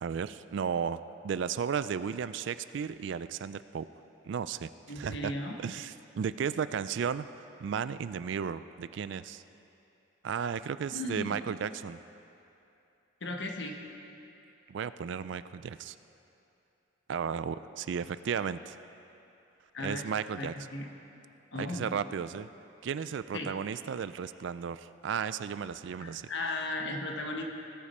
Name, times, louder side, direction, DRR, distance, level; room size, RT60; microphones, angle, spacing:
voice 1, 0.0-3.9 4.3-4.7 5.0-5.3 5.6-7.3 7.6-9.4 10.2-12.0 14.7-15.9 17.1-18.8 19.8-20.5 21.6-22.5 22.8-26.3, right 7 dB, 60° right, 14 dB, 0.3 m, -34 dB
voice 2, 4.9-5.6 10.9-11.4 13.2-13.7 19.7-20.1 20.4-20.9 21.5-21.9 23.3-23.5 26.0-27.4, left 2 dB, 60° left, 2 dB, 1.2 m, -36 dB
18.5 x 8.5 x 4.3 m, 2.8 s
head